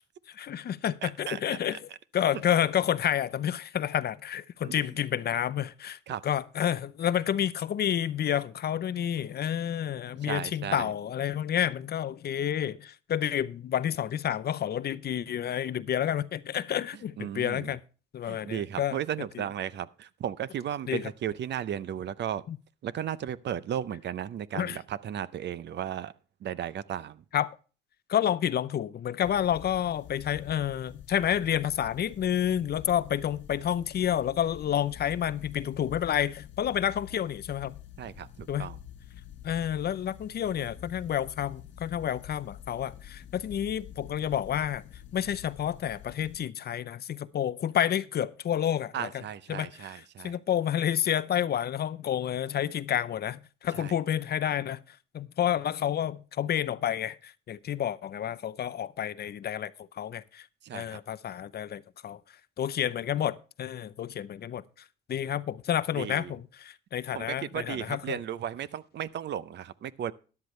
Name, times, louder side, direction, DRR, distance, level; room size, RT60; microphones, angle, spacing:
voice 1, 0.3-1.8 2.1-17.8 18.1-19.0 20.9-21.1 22.5-22.6 24.5-24.8 27.3-27.6 28.1-37.8 38.5-38.7 39.4-44.9 45.1-49.1 49.5-54.8 55.1-59.7 60.0-60.5 60.7-62.2 62.6-64.6 65.1-68.2, left 10 dB, 55° left, 0.6 m, -29 dB
voice 2, 1.0-1.6 4.6-4.8 6.1-6.2 10.2-10.9 17.2-17.7 18.2-22.4 22.8-26.1 26.4-27.2 38.0-38.8 48.9-50.4 53.7-53.9 60.6-61.0 65.9-66.3 67.1-70.1, right 10 dB, 60° right, 0.7 m, -35 dB
sound 1, 29.2-46.4, left 10 dB, 70° left, 1.1 m, -47 dB
13.0 x 11.0 x 3.2 m
cardioid pair, 90°, 20 cm